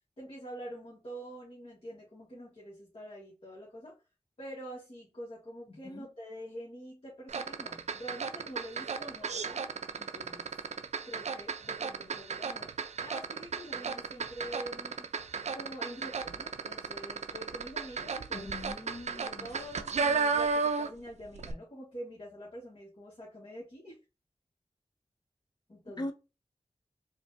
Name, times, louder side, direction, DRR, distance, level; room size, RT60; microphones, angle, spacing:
voice 1, 0.2-3.9 4.4-10.5 11.0-15.1 15.5-18.5 19.1-24.0 25.7-26.1, equal, 55° left, 1.4 m, -46 dB
voice 2, 5.7-6.1 18.3-19.5 26.0-26.1, left 1 dB, 40° left, 0.6 m, -41 dB
sound 1, 7.3-21.1 21.3-21.5, right 5 dB, 80° right, 0.4 m, -34 dB
4.3 x 2.6 x 2.6 m
wide cardioid pair, 50°, 11 cm